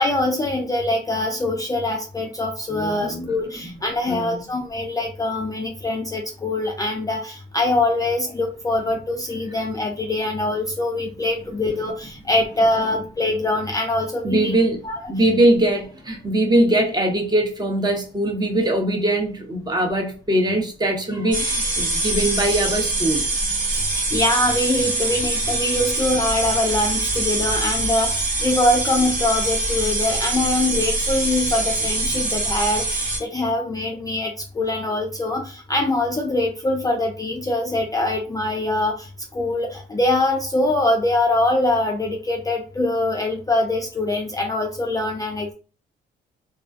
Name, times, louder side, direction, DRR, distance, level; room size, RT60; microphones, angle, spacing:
voice 1, 0.0-14.5 14.8-15.0 23.8-45.5, left 2 dB, 20° left, 0.3 m, -23 dB
voice 2, 2.7-3.8 4.1-4.4 14.2-14.8 15.1-23.3, right 1 dB, 20° right, 0.7 m, -21 dB
sound 1, 21.3-33.2, right 2 dB, 45° right, 1.1 m, -24 dB
2.3 x 2.2 x 2.5 m
cardioid pair, 90°, 20 cm